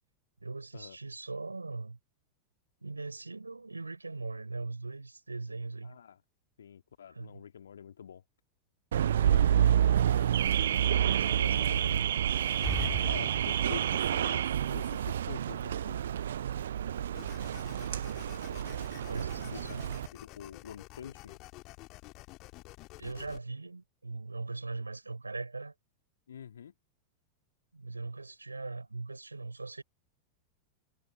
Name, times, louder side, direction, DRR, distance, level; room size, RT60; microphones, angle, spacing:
voice 1, 0.4-2.0 2.8-6.0 7.1-7.4 11.1-12.1 19.1-19.9 23.0-25.7 27.7-29.8, right 3 dB, 80° right, 4.6 m, -40 dB
voice 2, 5.8-6.2 6.6-8.2 9.1-9.7 11.2-11.8 13.1-16.0 18.6-18.8 19.3-19.8 20.1-21.4 26.3-26.7, left 8 dB, 65° left, 2.0 m, -46 dB
Car / Alarm, 8.9-20.1, right 10 dB, 65° right, 0.5 m, -29 dB
sound 1, 12.4-14.0, left 2 dB, 10° left, 2.1 m, -39 dB
sound 2, 17.1-23.4, left 21 dB, 40° left, 2.3 m, -50 dB
figure-of-eight pair, 90°, 0 cm